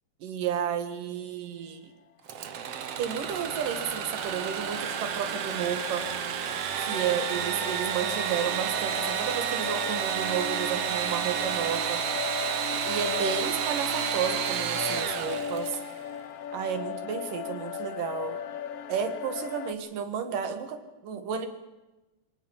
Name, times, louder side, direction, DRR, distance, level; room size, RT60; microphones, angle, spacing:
voice 1, 0.2-1.9 3.0-6.1 6.8-12.0 12.8-15.8 16.5-18.4 18.9-21.5, right 8 dB, 70° right, 8 dB, 3.5 m, -32 dB
Engine / Sawing, 2.3-16.0, right 8 dB, 55° right, 2.0 m, -31 dB
sound 1, 2.9-19.7, left 8 dB, 70° left, 1.4 m, -38 dB
23.5 x 18.5 x 7.3 m, 1.1 s
omnidirectional pair, 4.0 m